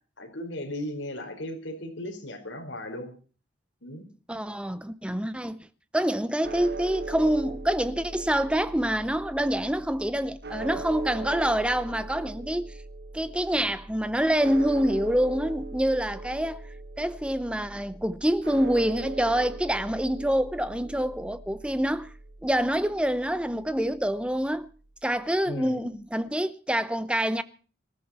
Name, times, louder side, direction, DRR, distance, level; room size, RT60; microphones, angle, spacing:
voice 1, 0.2-3.1 3.8-4.0 25.4-25.9, left 1 dB, 70° left, 4.4 m, -36 dB
voice 2, 4.3-5.7 5.9-12.8 13.1-16.6 17.0-22.1 22.4-24.7 25.0-27.4, right 1 dB, 5° right, 0.7 m, -26 dB
sound 1, 6.4-24.7, right 3 dB, 55° right, 0.9 m, -40 dB
19.5 x 14.0 x 4.3 m
head